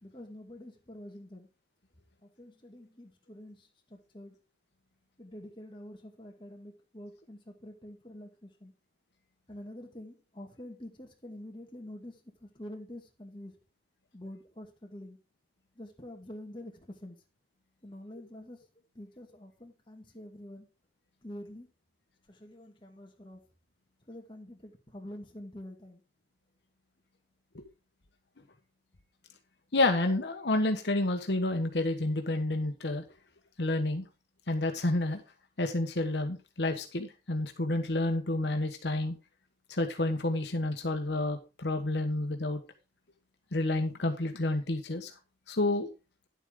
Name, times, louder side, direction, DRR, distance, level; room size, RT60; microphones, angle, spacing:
voice 1, 0.0-1.5 2.2-4.4 5.2-8.7 9.5-13.6 14.1-15.2 15.7-17.2 17.8-18.6 18.9-20.7 21.2-21.7 22.3-23.4 24.1-26.0, left 1 dB, 30° left, 2.1 m, -47 dB
voice 2, 29.7-33.0 33.6-34.0 34.5-35.2 35.6-39.2 39.7-42.6 43.5-45.1 45.5-45.9, left 2 dB, 75° left, 1.2 m, -29 dB
10.5 x 8.1 x 3.8 m
head